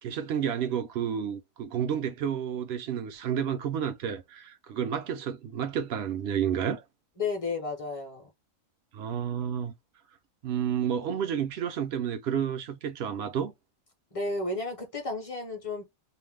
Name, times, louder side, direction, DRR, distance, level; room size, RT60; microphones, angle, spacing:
voice 1, 0.0-6.8 8.9-9.7 10.4-13.5, right 8 dB, 60° right, 0.7 m, -30 dB
voice 2, 7.2-8.2 14.1-15.8, left 3 dB, 35° left, 0.6 m, -32 dB
2.5 x 2.1 x 3.3 m
omnidirectional pair, 1.5 m